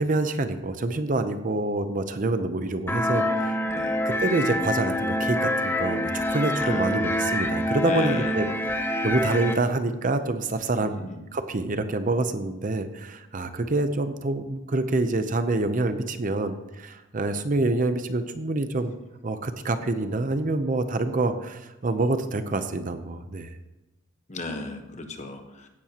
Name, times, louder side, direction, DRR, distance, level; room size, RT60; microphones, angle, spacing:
voice 1, 0.0-3.6 4.1-8.5 9.0-19.0 19.2-23.5, right 2 dB, 40° right, 9 dB, 0.6 m, -26 dB
sound 1, 2.9-9.5, left 1 dB, 10° left, 0.6 m, -26 dB
voice 2, 3.6-4.0 6.6-7.3 7.6-8.4 10.8-11.3 24.3-25.7, left 2 dB, 35° left, 5 dB, 1.1 m, -36 dB
16.0 x 11.0 x 2.9 m, 1.0 s
head